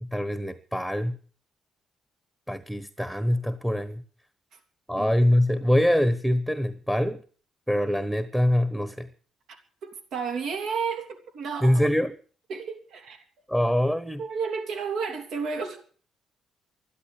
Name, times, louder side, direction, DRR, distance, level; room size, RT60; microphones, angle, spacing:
voice 1, 0.0-1.2 2.5-4.0 4.9-7.2 7.7-9.1 11.6-12.1 13.5-14.2, equal, 5° right, 1.2 m, -24 dB
voice 2, 9.8-11.7 12.5-13.2 14.2-15.8, right 5 dB, 75° right, 3.1 m, -32 dB
12.5 x 12.0 x 8.4 m
cardioid pair, 90°, 0 cm